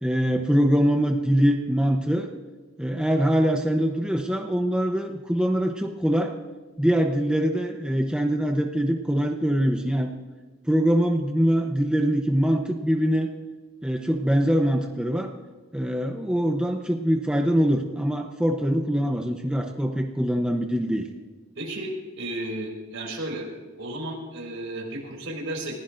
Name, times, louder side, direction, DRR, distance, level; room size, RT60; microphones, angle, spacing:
voice 1, 0.0-2.3 2.8-6.3 6.8-10.1 10.6-13.3 13.8-15.3 15.7-21.1, equal, 5° right, 3 dB, 0.8 m, -23 dB
voice 2, 21.6-23.5 23.8-25.8, right 1 dB, 70° right, -1 dB, 5.1 m, -33 dB
29.5 x 15.5 x 2.6 m, 1.3 s
head